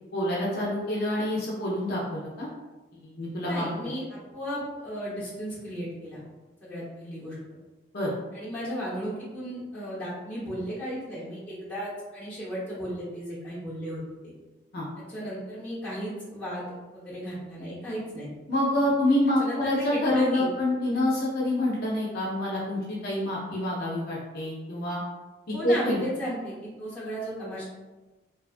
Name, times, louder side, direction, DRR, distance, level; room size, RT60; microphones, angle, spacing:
voice 1, 0.1-2.5 2.9-3.7 7.9-8.1 14.7-14.9 18.5-25.0 25.5-26.0, left 1 dB, 50° left, -6 dB, 0.5 m, -27 dB
voice 2, 3.4-6.2 6.6-7.4 8.3-14.3 15.0-18.3 19.4-20.5 25.5-27.6, equal, 10° left, -10 dB, 0.9 m, -35 dB
2.6 x 2.3 x 2.4 m, 1.2 s
head